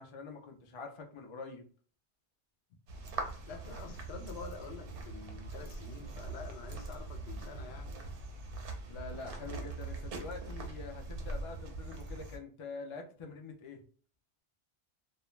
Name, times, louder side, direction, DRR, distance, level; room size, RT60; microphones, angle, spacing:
voice 1, 0.0-1.6 8.9-13.8, left 4 dB, 55° left, 3 dB, 0.3 m, -45 dB
sound 1, 2.9-12.4, right 3 dB, 85° right, 0.9 m, -42 dB
voice 2, 3.5-8.0, left 5 dB, 75° left, 3 dB, 0.8 m, -47 dB
2.3 x 2.1 x 3.0 m, 0.42 s
omnidirectional pair, 1.1 m